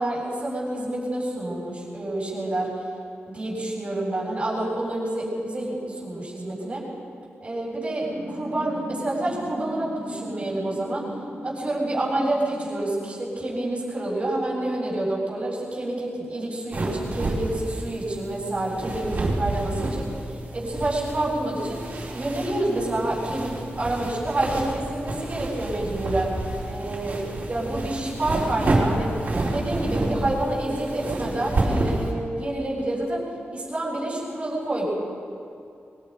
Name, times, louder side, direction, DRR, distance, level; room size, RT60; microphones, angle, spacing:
voice 1, 0.0-2.7 3.3-6.8 7.4-11.0 11.4-20.1 20.5-21.8 22.1-23.5 23.8-26.3 26.7-27.2 27.5-29.1 29.5-33.2 33.5-34.8, right 1 dB, 25° right, -5 dB, 7.3 m, -28 dB
sound 1, 8.0-13.6, equal, 25° left, 5.8 m, -38 dB
sound 2, 16.7-32.1, right 2 dB, 45° right, 4.6 m, -29 dB
25.5 x 23.5 x 5.4 m, 2.5 s
wide cardioid pair, 155°, 4 cm